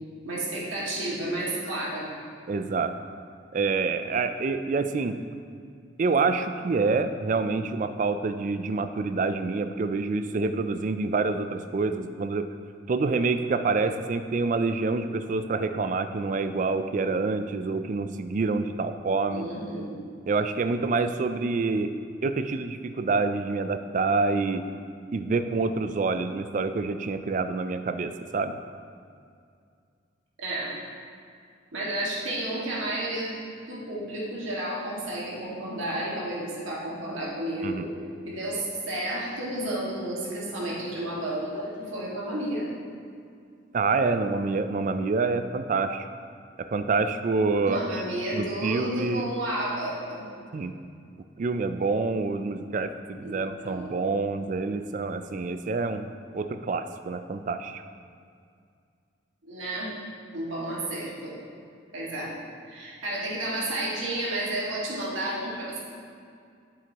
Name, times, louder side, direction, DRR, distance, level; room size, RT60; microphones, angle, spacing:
voice 1, 0.2-2.1 19.3-20.0 30.4-30.7 31.7-33.4 33.7-37.9 38.3-42.7 47.6-50.2 53.2-54.0 59.4-59.9 60.3-61.4 61.9-62.3 62.7-65.8, right 1 dB, 85° right, -6 dB, 1.9 m, -31 dB
voice 2, 2.5-2.9 3.5-5.2 6.0-12.5 12.9-19.5 20.3-21.9 22.2-24.7 25.1-28.6 37.6-37.9 43.7-46.1 46.6-48.0 48.3-49.3 50.5-50.7 51.4-57.8, right 4 dB, 40° right, 9 dB, 0.3 m, -27 dB
7.8 x 7.7 x 2.9 m, 2.3 s
head